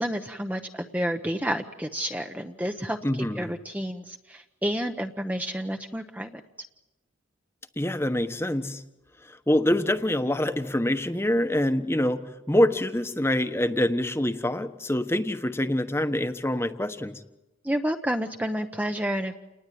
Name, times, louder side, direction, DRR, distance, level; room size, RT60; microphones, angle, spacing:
voice 1, 0.0-6.3 17.6-19.4, equal, 10° right, 5 dB, 0.9 m, -30 dB
voice 2, 3.0-3.5 7.8-8.8 9.3-17.2, left 1 dB, 10° left, 9 dB, 1.2 m, -25 dB
29.0 x 20.0 x 9.3 m, 1.0 s
head